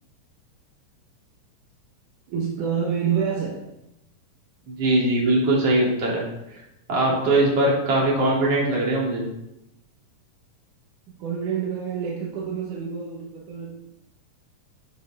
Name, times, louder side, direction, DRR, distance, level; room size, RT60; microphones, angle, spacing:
voice 1, 2.3-3.6 11.2-13.8, right 7 dB, 80° right, -2 dB, 2.7 m, -27 dB
voice 2, 4.7-6.3 6.5-6.6 6.9-9.3, right 1 dB, 50° right, -3 dB, 3.7 m, -21 dB
9.2 x 6.9 x 5.7 m, 0.88 s
omnidirectional pair, 3.6 m